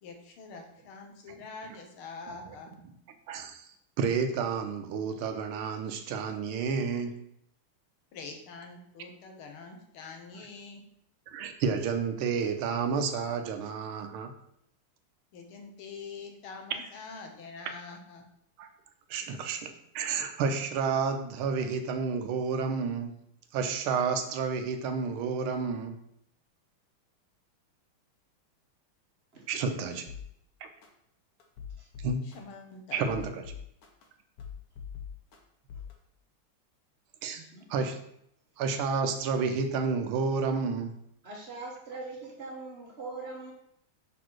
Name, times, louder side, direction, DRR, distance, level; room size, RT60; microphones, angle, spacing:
voice 1, 0.0-2.7 8.1-10.8 15.3-18.2 19.2-19.4 32.2-33.0, left 4 dB, 90° left, 3 dB, 1.9 m, -45 dB
voice 2, 3.3-3.7 4.0-7.2 11.3-14.3 18.6-18.7 19.1-23.2 23.5-26.0 29.5-30.1 32.0-32.3 32.9-33.4 37.2-37.4 37.7-38.0 38.6-41.0, right 5 dB, 85° right, 6 dB, 1.6 m, -30 dB
sound 1, 30.1-30.2 30.8-30.9 31.4-32.4 32.9-34.0 34.4-35.4 35.7-35.9, left 7 dB, 55° left, 1.2 m, -42 dB
voice 3, 37.3-37.7 41.2-43.5, right 3 dB, 35° right, -2 dB, 1.3 m, -41 dB
6.0 x 4.3 x 4.7 m, 0.73 s
omnidirectional pair, 2.3 m